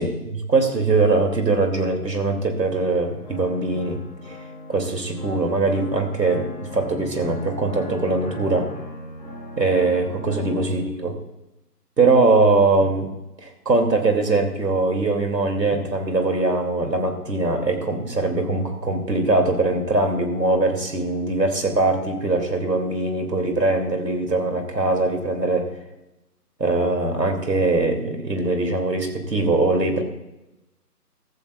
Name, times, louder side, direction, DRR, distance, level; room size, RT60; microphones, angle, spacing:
voice 1, 0.0-4.0 4.3-4.4 4.7-8.7 9.6-11.2 12.0-13.1 13.4-25.7 26.6-30.0, right 3 dB, 85° right, 5 dB, 2.7 m, -21 dB
sound 1, 2.7-10.7, left 1 dB, 5° left, 4.1 m, -39 dB
15.0 x 14.5 x 2.4 m, 0.97 s
figure-of-eight pair, 165°, 48 cm